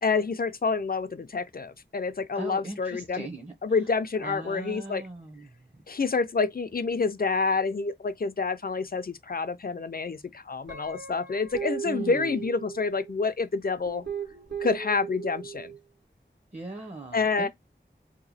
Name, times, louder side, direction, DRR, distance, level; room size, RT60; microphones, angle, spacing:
voice 1, 0.0-3.3 3.6-5.0 5.9-14.1 14.6-15.7 17.1-17.5, left 4 dB, 50° left, 0.5 m, -28 dB
voice 2, 2.3-3.8 4.2-5.5 11.8-12.5 16.5-17.5, right 2 dB, 35° right, 0.8 m, -39 dB
Guitar, 10.7-13.1 13.8-15.8, right 7 dB, 65° right, 1.4 m, -37 dB
2.9 x 2.2 x 4.0 m
wide cardioid pair, 40°, 20 cm